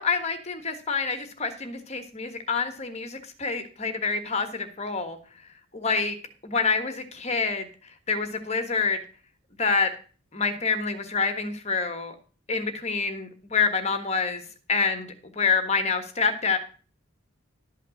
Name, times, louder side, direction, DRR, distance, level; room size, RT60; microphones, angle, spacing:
voice 1, 0.0-5.2 5.7-6.2 6.4-7.7 8.1-9.0 9.6-9.9 10.3-12.1 12.5-14.4 14.7-16.6, left 5 dB, 30° left, 7 dB, 1.5 m, -27 dB
12.0 x 5.7 x 6.4 m, 0.38 s
head